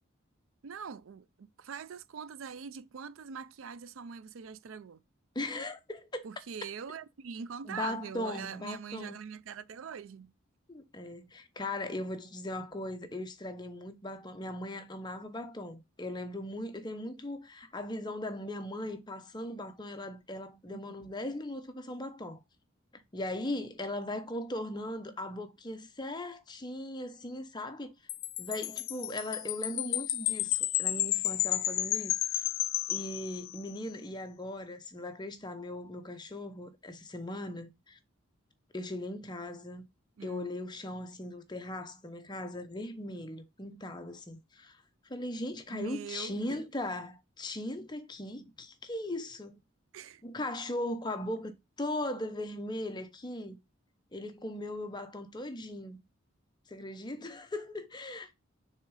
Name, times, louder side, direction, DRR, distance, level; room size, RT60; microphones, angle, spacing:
voice 1, 0.6-5.0 6.2-10.3 20.7-20.9 40.2-40.5 45.7-46.7 49.9-50.2, right 6 dB, 80° right, 0.4 m, -43 dB
voice 2, 5.3-6.3 7.7-9.2 10.7-22.4 22.9-27.9 28.4-32.4 32.9-38.0 38.7-39.8 40.2-44.8 45.1-49.6 50.2-53.6 54.1-56.0 56.7-58.3, left 1 dB, 20° left, 0.8 m, -39 dB
Wind chime, 28.1-33.8, left 15 dB, 80° left, 0.5 m, -32 dB
6.5 x 3.7 x 4.8 m
head